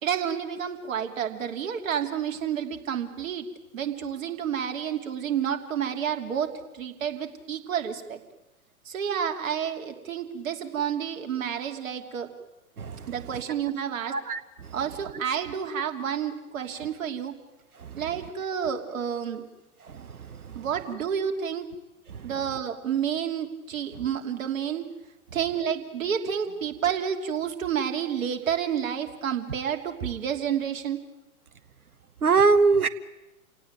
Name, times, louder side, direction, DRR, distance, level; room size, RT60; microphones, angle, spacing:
voice 1, 0.0-3.4 3.7-6.5 6.7-8.2 8.9-12.3 13.1-14.1 14.7-17.3 18.0-19.5 20.5-21.6 22.2-24.8 25.3-31.0, right 8 dB, 65° right, 3.1 m, -30 dB
voice 2, 14.1-14.4 32.2-32.9, right 4 dB, 90° right, 1.2 m, -20 dB
28.5 x 18.0 x 9.2 m
figure-of-eight pair, 110°, 43 cm